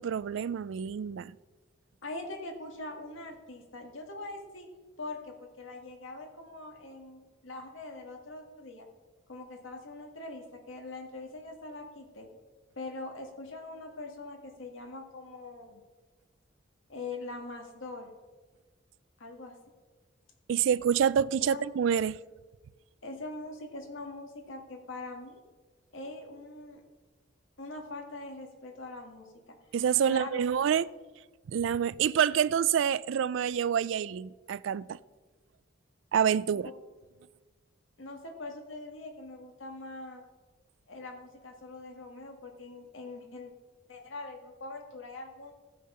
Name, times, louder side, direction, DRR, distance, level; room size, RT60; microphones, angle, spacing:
voice 1, 0.0-1.3 20.5-22.2 29.7-30.9 31.5-35.0 36.1-36.7, right 8 dB, 70° right, 0.3 m, -27 dB
voice 2, 2.0-4.7 5.0-8.9 9.3-12.3 12.8-15.8 16.9-18.1 19.2-19.6 21.5-21.6 23.0-25.4 25.9-26.8 27.6-29.6 30.1-30.7 36.5-36.7 38.0-40.2 40.9-43.5 43.9-45.5, left 2 dB, 80° left, 1.9 m, -42 dB
15.0 x 6.5 x 5.5 m
head